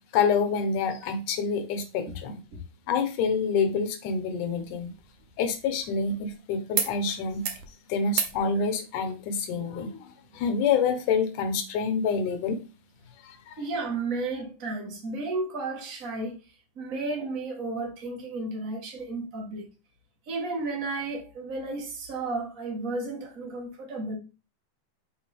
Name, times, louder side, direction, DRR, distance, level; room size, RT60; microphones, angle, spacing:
voice 1, 0.1-2.4 2.9-4.9 5.4-7.5 7.9-12.6 13.2-13.6, left 5 dB, 70° left, 2.2 m, -27 dB
sound 1, 4.6-6.3 6.7-6.9 7.2-7.7 8.1-8.4 9.7-9.8, right 8 dB, 75° right, 1.8 m, -33 dB
voice 2, 13.6-16.4 16.7-19.7 20.3-24.2, right 3 dB, 60° right, 0.8 m, -33 dB
6.3 x 4.6 x 3.6 m
omnidirectional pair, 4.3 m